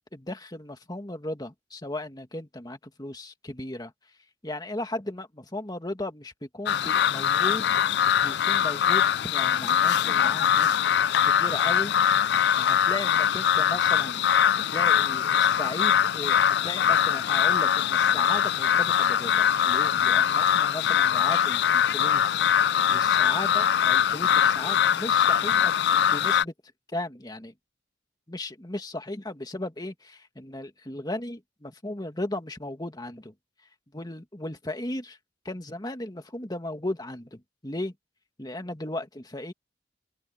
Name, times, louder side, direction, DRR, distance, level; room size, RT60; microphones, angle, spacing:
voice 1, 0.1-3.9 4.4-7.7 8.0-10.9 11.3-12.2 12.6-22.6 22.9-26.5 26.9-27.5 28.3-33.3 33.9-35.2 35.5-37.9 38.4-39.5, left 1 dB, 20° left, 2.0 m, -36 dB
sound 1, 6.7-26.4, left 9 dB, 65° left, 0.4 m, -22 dB
sound 2, 19.4-21.8 22.2-23.7, left 3 dB, 90° left, 6.1 m, -56 dB
open air
head